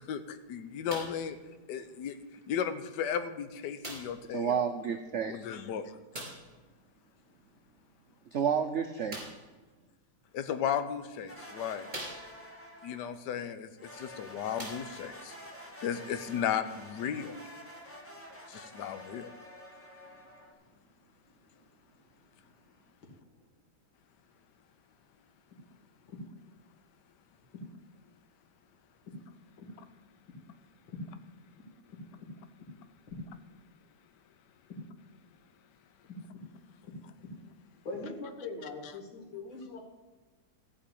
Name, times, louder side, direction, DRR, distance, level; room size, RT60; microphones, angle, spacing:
voice 1, 0.0-1.4 1.7-2.2 2.5-4.7 5.3-6.0 10.3-11.9 12.8-15.4 15.8-17.3 18.5-19.3, left 8 dB, 65° left, 10 dB, 1.4 m, -35 dB
sound 1, 0.9-1.3 2.2-2.3 3.8-4.3 6.1-6.5 9.1-9.5 10.5-10.6 11.2-11.3 11.9-12.6 13.9-14.0 14.5-15.2 16.1-16.2, right 1 dB, 25° right, 4.0 m, -42 dB
voice 2, 4.3-5.5 8.3-9.2, right 7 dB, 75° right, 6 dB, 0.6 m, -30 dB
sound 2, 11.3-13.2 13.8-20.5, equal, 5° left, 1.6 m, -49 dB
voice 3, 36.1-36.4 36.8-36.9 37.8-39.8, left 3 dB, 85° left, 1 dB, 3.2 m, -42 dB
14.0 x 5.3 x 8.4 m, 1.2 s
omnidirectional pair, 2.1 m